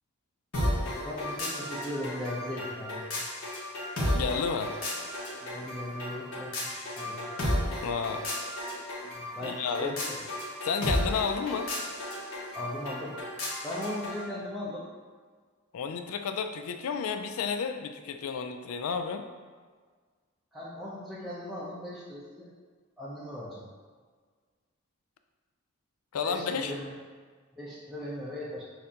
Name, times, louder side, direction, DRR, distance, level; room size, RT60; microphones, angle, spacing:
sound 1, 0.5-14.2, left 1 dB, 70° left, 1.2 m, -34 dB
voice 1, 0.9-3.2 5.4-7.5 9.0-10.2 12.5-13.2 13.6-14.9 20.5-22.5 23.0-23.7 26.2-26.9 27.5-28.6, left 1 dB, ahead, -9 dB, 0.5 m, -38 dB
voice 2, 4.1-4.7 7.8-8.3 9.4-10.0 10.6-11.7 15.7-19.3 26.1-26.7, left 6 dB, 90° left, 7 dB, 0.4 m, -31 dB
6.4 x 2.5 x 2.7 m, 1.5 s
head